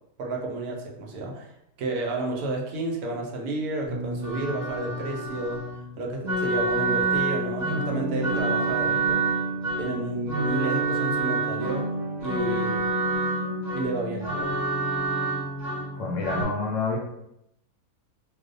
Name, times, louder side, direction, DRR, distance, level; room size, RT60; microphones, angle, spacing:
voice 1, 0.2-1.5 1.8-5.6 6.0-9.2 9.8-11.9 12.2-12.9 13.7-14.5, right 2 dB, 80° right, 0 dB, 1.1 m, -31 dB
sound 1, 3.9-16.4, right 2 dB, 15° right, 0.9 m, -28 dB
voice 2, 15.9-17.0, left 4 dB, 70° left, -2 dB, 0.8 m, -28 dB
2.5 x 2.0 x 2.5 m, 0.81 s
omnidirectional pair, 1.6 m